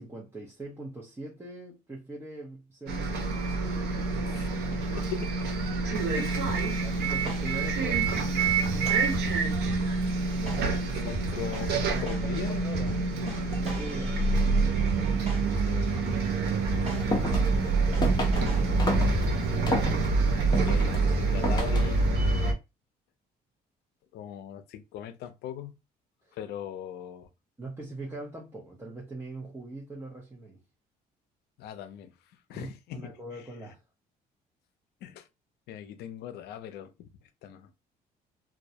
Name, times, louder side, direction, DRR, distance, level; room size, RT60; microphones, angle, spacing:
voice 1, 0.0-4.4 6.8-9.0 10.4-10.7 11.0-11.5 11.9-13.0 13.6-14.2 16.7-17.4 26.2-26.4 27.6-30.6 32.5-33.8, right 2 dB, 15° right, 0.7 m, -42 dB
Bus, 2.9-22.5, right 3 dB, 75° right, 0.6 m, -27 dB
voice 2, 4.2-5.3 6.2-6.8 11.0-12.6 15.7-15.9 20.2-22.1 24.1-25.8 26.4-27.3 31.6-32.1 32.5-33.1 35.0-35.3 35.7-37.1 37.4-37.7, left 10 dB, 75° left, 0.5 m, -40 dB
sound 1, 6.5-19.6, right 2 dB, 40° right, 1.1 m, -41 dB
sound 2, 16.9-22.1, left 1 dB, 25° left, 0.6 m, -32 dB
2.2 x 2.0 x 2.7 m
cardioid pair, 110°, 17 cm